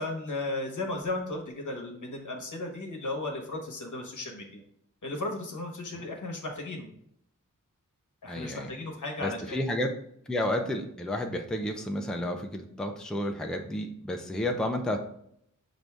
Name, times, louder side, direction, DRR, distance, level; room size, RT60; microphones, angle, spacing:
voice 1, 0.0-4.6 5.0-6.9 8.2-9.6, left 2 dB, 65° left, 2 dB, 1.0 m, -35 dB
voice 2, 8.3-8.7 9.2-9.9 10.3-15.0, left 1 dB, ahead, 4 dB, 0.5 m, -31 dB
6.0 x 2.6 x 3.3 m, 0.71 s
wide cardioid pair, 80°, 32 cm